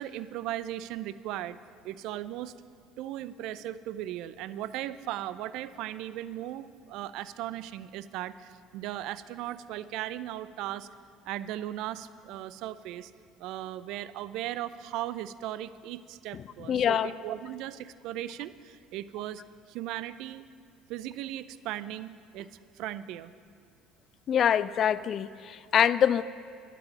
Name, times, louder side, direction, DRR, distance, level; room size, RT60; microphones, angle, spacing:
voice 1, 0.0-1.6 1.8-2.5 3.0-10.9 11.2-13.1 13.4-19.4 19.7-20.5 20.9-22.5 22.7-23.3, right 13 dB, 65° right, 15 dB, 0.5 m, -37 dB
voice 2, 16.7-17.1 24.3-26.2, left 9 dB, 45° left, 16 dB, 0.5 m, -24 dB
11.5 x 9.1 x 9.8 m, 2.5 s
hypercardioid pair, 65°, 0 cm